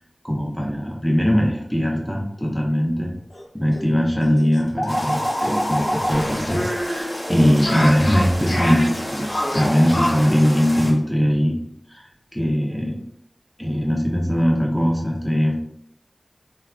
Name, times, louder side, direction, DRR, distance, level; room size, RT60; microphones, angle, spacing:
voice 1, 0.2-3.1 3.5-11.6 11.9-13.0 13.6-15.6, equal, 5° left, -2 dB, 0.7 m, -20 dB
sound 1, 3.3-3.4 3.7-3.8 4.2-10.3, equal, 65° left, 0.8 m, -26 dB
sound 2, 4.9-10.9, equal, 40° left, 1.1 m, -33 dB
3.4 x 2.3 x 2.3 m, 0.73 s
wide cardioid pair, 50°, 0 cm